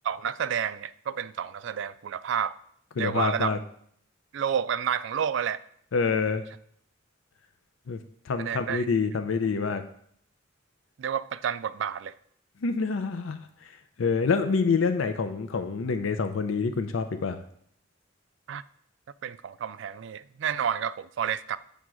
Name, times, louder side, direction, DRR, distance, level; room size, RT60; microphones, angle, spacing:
voice 1, 0.0-2.5 3.0-3.6 4.3-5.6 8.4-8.9 11.0-12.1 18.5-18.6 19.2-21.6, right 8 dB, 65° right, 15 dB, 0.3 m, -30 dB
voice 2, 3.0-3.6 5.9-6.4 7.9-8.0 8.3-9.8 12.6-13.7 14.0-17.4, left 5 dB, 80° left, 9 dB, 0.5 m, -27 dB
7.6 x 3.5 x 6.2 m, 0.66 s
head